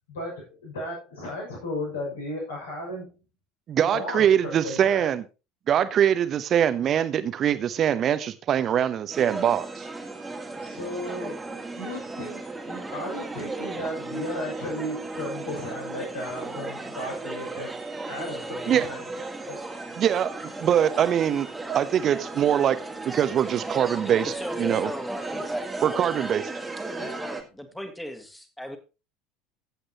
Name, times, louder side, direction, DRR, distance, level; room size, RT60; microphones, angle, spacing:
voice 1, 0.1-3.1 3.8-5.1 10.6-11.4 11.7-12.4 12.7-17.7 18.1-19.0 19.5-19.6 27.0-27.2, left 1 dB, 70° left, -3 dB, 6.4 m, -35 dB
voice 2, 3.7-5.2 5.7-9.9 18.7-18.9 20.0-22.8 23.1-24.9 25.8-26.5, right 9 dB, 40° right, 12 dB, 1.0 m, -23 dB
sound 1, 9.1-27.4, right 2 dB, 10° right, 1.9 m, -35 dB
voice 3, 24.0-26.1 27.2-28.8, equal, 5° left, 7 dB, 2.0 m, -38 dB
15.0 x 8.1 x 3.0 m, 0.30 s
figure-of-eight pair, 70°, 0 cm